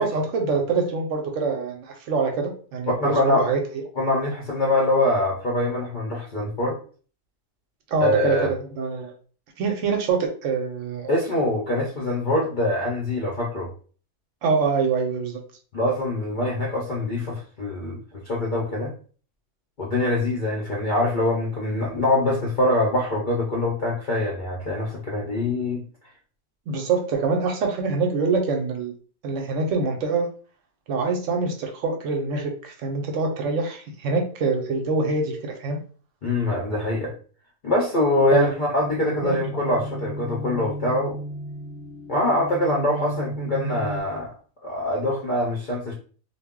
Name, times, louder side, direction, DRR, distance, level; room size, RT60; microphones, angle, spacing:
voice 1, 0.0-3.8 7.9-9.1 9.6-11.1 14.4-15.4 26.7-28.9 29.2-30.3 30.9-35.8 38.3-38.5 39.2-39.4, right 4 dB, 70° right, 3 dB, 0.9 m, -25 dB
voice 2, 3.0-3.5 4.0-6.8 8.0-8.5 11.1-13.7 15.7-18.0 18.2-18.9 19.8-25.8 36.2-37.1 37.6-41.2 42.1-44.3 44.6-45.9, left 1 dB, 55° left, -3 dB, 0.5 m, -24 dB
sound 1, 38.8-44.0, equal, 25° right, 0.4 m, -34 dB
2.3 x 2.0 x 3.5 m, 0.41 s
omnidirectional pair, 1.4 m